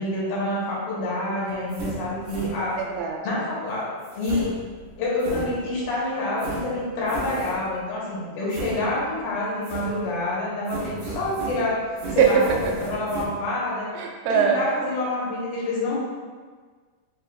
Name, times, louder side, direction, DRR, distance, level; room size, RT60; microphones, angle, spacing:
voice 1, 0.0-2.8 3.2-3.9 4.1-4.5 5.0-11.8 12.1-13.9 14.3-16.0, left 2 dB, 85° left, -6 dB, 3.0 m, -27 dB
sound 1, 1.5-3.0 4.0-5.9 6.4-7.8 8.5-9.3 9.6-10.3 10.7-13.3, right 3 dB, 70° right, 1.9 m, -35 dB
voice 2, 2.8-3.3 12.2-12.4 14.0-14.6, right 8 dB, 85° right, 2 dB, 2.3 m, -21 dB
7.0 x 2.6 x 2.4 m, 1.5 s
omnidirectional pair, 4.2 m